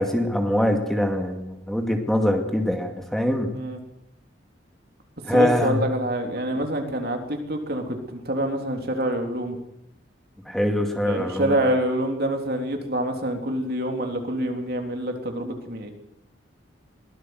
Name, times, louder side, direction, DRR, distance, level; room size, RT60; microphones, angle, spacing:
voice 1, 0.0-3.5 5.3-5.8 10.5-11.5, left 1 dB, ahead, 3 dB, 2.3 m, -23 dB
voice 2, 5.3-9.6 11.0-15.9, right 1 dB, 55° right, 4 dB, 3.6 m, -26 dB
23.0 x 18.5 x 8.0 m, 0.80 s
head